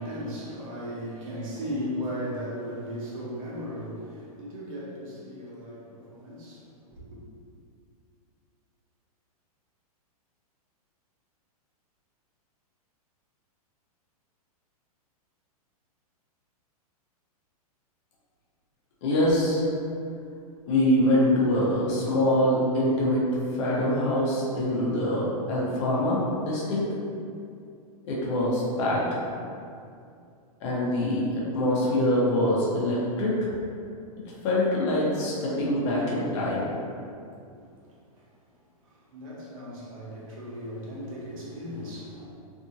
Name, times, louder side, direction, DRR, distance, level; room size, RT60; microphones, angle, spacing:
voice 1, 0.0-7.2 37.5-37.6 38.2-38.3 38.8-42.2, equal, 60° right, -6 dB, 1.0 m, -36 dB
voice 2, 19.0-19.6 20.7-23.2 23.5-26.8 28.0-29.2 30.6-33.5 34.4-36.7, left 1 dB, 50° left, -6 dB, 0.8 m, -24 dB
2.7 x 2.5 x 2.8 m, 2.5 s
hypercardioid pair, 145°, 20 cm